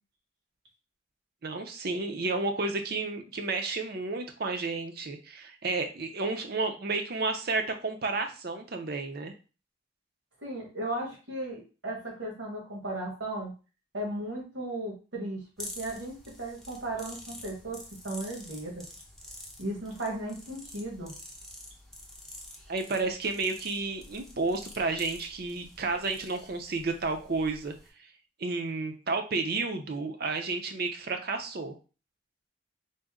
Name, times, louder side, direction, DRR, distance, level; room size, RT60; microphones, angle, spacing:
voice 1, 1.4-9.3 22.7-27.7 28.4-31.7, right 3 dB, 55° right, 5 dB, 0.6 m, -31 dB
voice 2, 10.4-13.5 13.9-17.8 18.0-18.8 19.6-21.1, right 1 dB, 80° right, -2 dB, 1.5 m, -36 dB
sound 1, 15.6-27.9, left 1 dB, ahead, 0.5 m, -48 dB
4.0 x 2.1 x 3.6 m, 0.34 s
head